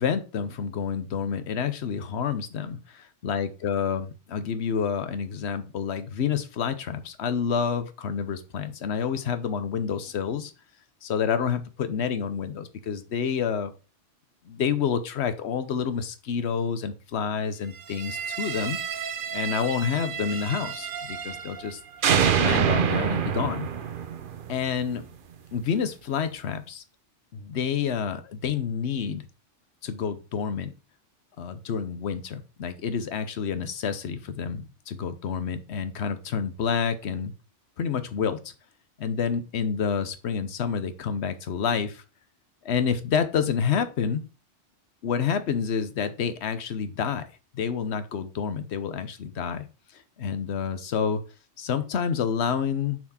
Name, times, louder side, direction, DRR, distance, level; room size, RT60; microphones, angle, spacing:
voice 1, 0.0-10.5 11.0-13.7 14.5-21.8 22.4-23.7 24.5-25.1 25.5-26.8 27.3-29.2 29.8-30.7 31.4-37.3 37.8-38.5 39.0-42.0 42.6-44.3 45.0-47.2 47.5-49.7 49.9-51.2 51.6-53.1, left 7 dB, 65° left, 11 dB, 1.0 m, -28 dB
sound 1, 17.9-21.7 22.0-25.0, right 7 dB, 55° right, 0.7 m, -27 dB
6.1 x 4.5 x 4.2 m, 0.33 s
omnidirectional pair, 1.2 m